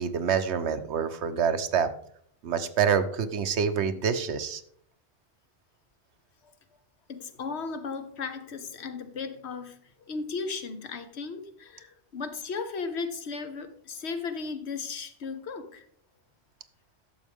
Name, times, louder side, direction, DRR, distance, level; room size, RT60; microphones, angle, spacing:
voice 1, 0.0-1.9 2.4-4.6, right 7 dB, 90° right, 1.1 m, -26 dB
voice 2, 7.1-15.8, left 4 dB, 85° left, 1.2 m, -36 dB
11.5 x 7.2 x 3.5 m
omnidirectional pair, 1.1 m